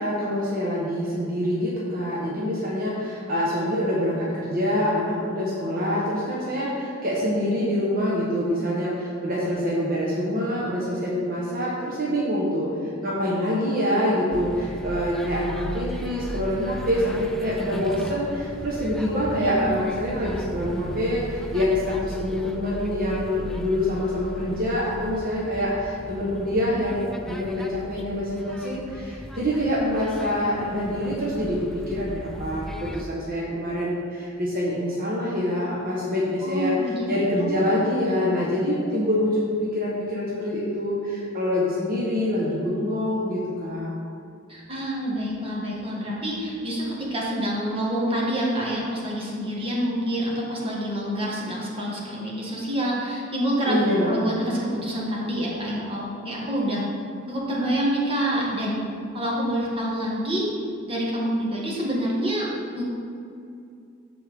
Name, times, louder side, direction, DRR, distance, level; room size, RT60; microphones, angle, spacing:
voice 1, 0.0-12.7 13.0-43.9 53.6-54.2, left 1 dB, 45° right, -6 dB, 1.2 m, -25 dB
sound 1, 14.3-33.0, equal, ahead, 0.4 m, -37 dB
voice 2, 19.1-19.9 36.4-37.1 37.4-37.6 44.5-56.8 57.3-58.8 59.1-60.5 60.9-62.5 62.7-62.8, equal, 30° right, -4 dB, 1.7 m, -27 dB
13.5 x 4.5 x 3.6 m, 2.5 s
head